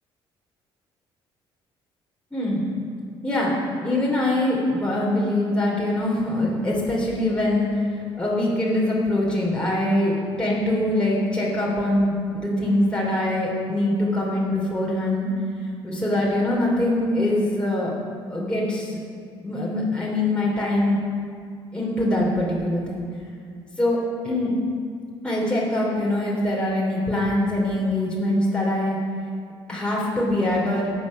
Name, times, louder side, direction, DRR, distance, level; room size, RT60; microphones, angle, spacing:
voice 1, 2.3-2.6 3.2-3.5 3.8-7.9 8.2-15.3 15.8-17.9 18.3-19.0 19.4-21.0 21.7-23.0 23.8-24.0 24.2-24.6 25.2-28.9 29.7-30.9, left 1 dB, 10° left, -6 dB, 3.2 m, -23 dB
11.5 x 8.0 x 5.4 m, 2.2 s
hypercardioid pair, 55°, 13 cm